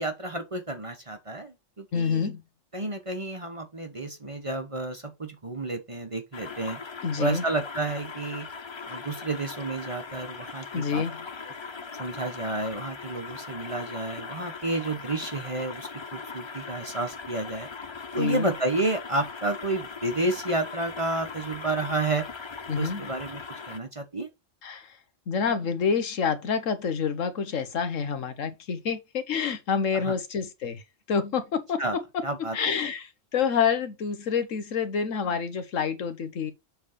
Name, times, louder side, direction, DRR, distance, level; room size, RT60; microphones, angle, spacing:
voice 1, 0.0-2.3 2.7-6.8 7.2-8.5 8.9-11.0 12.0-17.7 18.1-22.2 22.8-24.3 29.9-30.1 31.8-32.0 32.2-32.6, right 2 dB, 30° right, 0.9 m, -31 dB
voice 2, 1.9-2.4 7.0-7.4 10.7-11.2 18.2-18.5 22.7-23.0 24.6-25.0 25.3-30.8 31.1-32.2 32.5-36.5, left 6 dB, 75° left, 1.4 m, -28 dB
sound 1, 6.3-23.8, left 5 dB, 40° left, 0.4 m, -40 dB
7.6 x 3.5 x 5.0 m
omnidirectional pair, 1.3 m